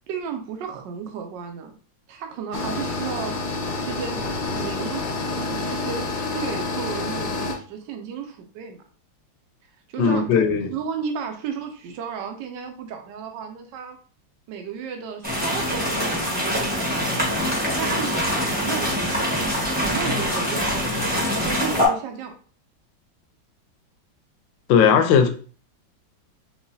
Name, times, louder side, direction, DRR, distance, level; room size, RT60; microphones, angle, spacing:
voice 1, 0.1-1.7 2.1-8.8 9.9-14.0 14.5-19.5 19.7-22.3, right 6 dB, 75° right, 1.2 m, -34 dB
sound 1, 2.5-7.6, left 3 dB, 60° left, 0.9 m, -28 dB
voice 2, 10.0-10.7 24.7-25.3, left 7 dB, 80° left, 1.3 m, -17 dB
sound 2, 15.2-21.9, equal, 5° right, 0.9 m, -24 dB
4.8 x 2.2 x 2.7 m
omnidirectional pair, 2.1 m